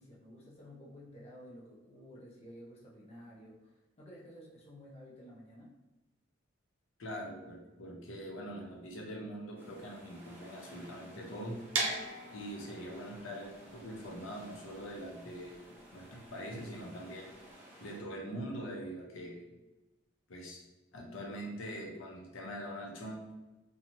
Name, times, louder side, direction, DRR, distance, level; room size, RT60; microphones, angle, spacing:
voice 1, 0.0-5.7, equal, 35° left, -4 dB, 0.5 m, -52 dB
voice 2, 7.0-11.6 12.3-15.6 15.9-17.3 17.8-19.4 20.3-20.6 20.9-23.2, equal, 85° left, 0 dB, 0.6 m, -43 dB
sound 1, 9.6-18.0, equal, 10° right, 0.6 m, -56 dB
sound 2, 11.7-17.5, right 3 dB, 85° right, 0.6 m, -39 dB
2.9 x 2.3 x 2.6 m, 1.1 s
head